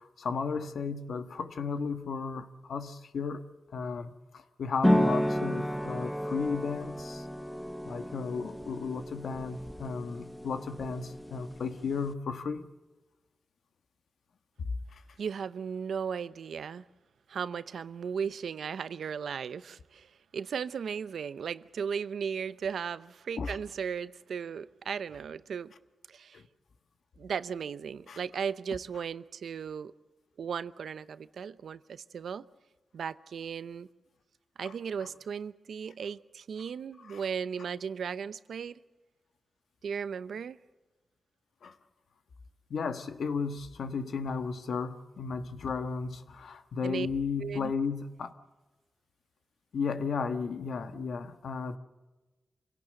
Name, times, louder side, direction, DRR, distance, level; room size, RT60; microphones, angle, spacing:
voice 1, 0.0-3.4 3.7-7.3 7.8-12.7 14.6-15.0 23.4-23.6 26.3-26.4 28.1-28.2 34.6-34.7 37.0-37.2 41.6-41.7 42.7-48.3 49.7-51.8, left 5 dB, 85° left, 1.4 m, -34 dB
sound 1, 4.8-12.1, equal, 5° left, 1.0 m, -32 dB
voice 2, 15.2-16.8 17.3-25.7 26.1-26.4 27.2-29.9 30.4-32.4 32.9-33.9 34.6-38.7 39.8-40.6 46.8-47.1 47.4-47.7, right 7 dB, 90° right, 0.7 m, -36 dB
27.5 x 17.5 x 7.8 m
wide cardioid pair, 125°, 0 cm